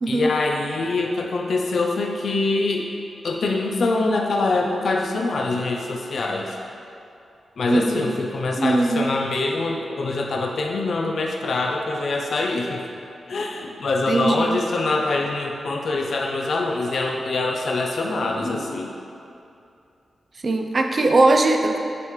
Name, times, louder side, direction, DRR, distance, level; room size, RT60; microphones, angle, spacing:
voice 1, 0.1-2.9 3.2-6.6 7.6-12.8 13.3-18.9, left 3 dB, 70° left, 1 dB, 0.5 m, -24 dB
voice 2, 7.7-8.1 8.6-9.1 14.1-14.6 20.4-21.8, right 2 dB, 50° right, 4 dB, 0.6 m, -20 dB
9.1 x 3.5 x 3.2 m, 2.6 s
cardioid pair, 50°, 0 cm